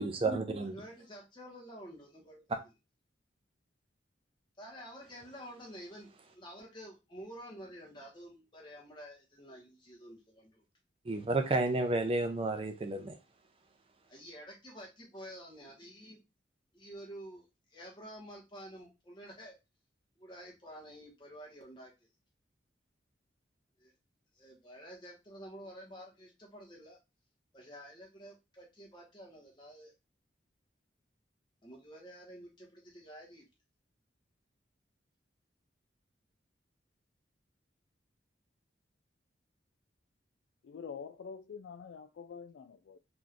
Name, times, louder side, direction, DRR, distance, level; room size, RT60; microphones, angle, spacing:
voice 1, 0.0-0.8 11.1-13.2, right 2 dB, 30° right, 0.5 m, -31 dB
voice 2, 0.6-2.4 4.6-10.6 14.1-16.2 16.7-19.5 20.2-21.9 23.8-23.9 24.3-27.0 27.5-29.9 31.6-33.5, equal, 25° left, 1.4 m, -50 dB
voice 3, 40.6-43.0, left 6 dB, 75° left, 0.3 m, -46 dB
3.8 x 3.0 x 2.5 m
head